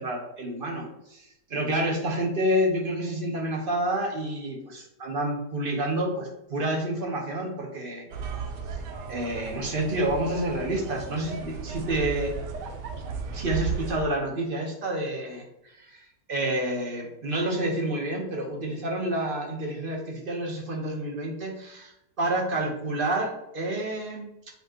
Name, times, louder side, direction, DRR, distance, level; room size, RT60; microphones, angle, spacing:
voice 1, 0.0-8.1 9.1-12.3 13.3-15.5 15.7-16.0 16.3-24.3, right 1 dB, 35° right, 0 dB, 1.4 m, -29 dB
sound 1, 8.1-14.0, right 5 dB, 80° right, 1.4 m, -35 dB
7.5 x 4.9 x 3.1 m, 0.85 s
omnidirectional pair, 1.8 m